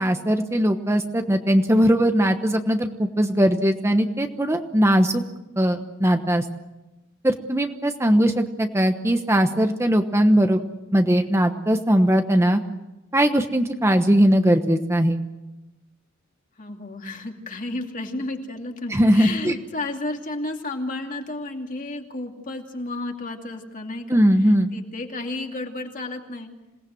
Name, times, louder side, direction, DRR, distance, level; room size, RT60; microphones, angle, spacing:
voice 1, 0.0-5.2 5.6-6.4 7.2-10.6 10.9-12.6 13.1-15.2 18.9-19.5 24.1-24.7, equal, 15° right, 6 dB, 1.1 m, -20 dB
voice 2, 16.6-26.5, left 2 dB, 40° left, 3 dB, 2.6 m, -32 dB
27.0 x 18.5 x 7.9 m, 1.0 s
head